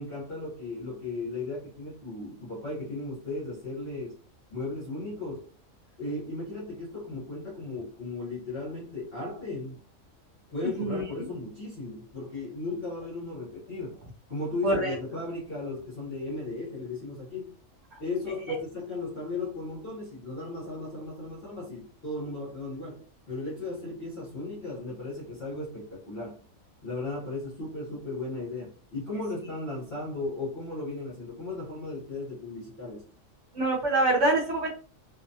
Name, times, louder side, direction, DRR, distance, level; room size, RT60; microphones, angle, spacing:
voice 1, 0.0-4.1 4.5-5.5 6.0-9.8 10.5-14.0 14.3-17.5 18.0-26.4 26.8-33.1, left 2 dB, 50° left, 1.0 m, -36 dB
voice 2, 14.6-14.9 18.5-18.6 33.5-34.7, right 2 dB, 70° right, 1.0 m, -25 dB
2.6 x 2.1 x 2.6 m
omnidirectional pair, 1.4 m